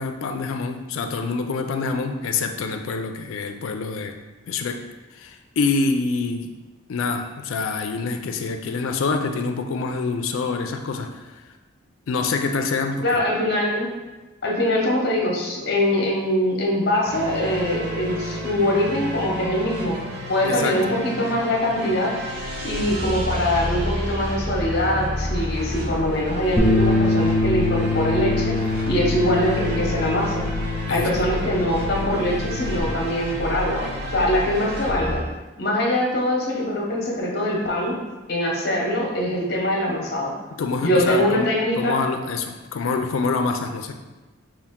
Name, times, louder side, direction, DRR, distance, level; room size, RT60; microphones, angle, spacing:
voice 1, 0.0-4.2 4.5-6.5 6.9-11.4 12.1-13.2 20.4-20.9 30.9-31.1 40.5-43.9, left 4 dB, 85° left, 5 dB, 0.4 m, -26 dB
voice 2, 13.0-13.9 14.4-20.0 20.3-22.1 22.6-28.5 28.8-30.4 30.9-35.2 35.6-37.9 38.3-40.3 40.8-42.0, left 1 dB, 50° left, -1 dB, 0.9 m, -23 dB
sound 1, 17.0-35.2, equal, 50° right, 0.7 m, -30 dB
Bass guitar, 26.6-32.8, left 2 dB, 15° left, 0.4 m, -24 dB
5.6 x 2.4 x 3.6 m, 1.2 s
head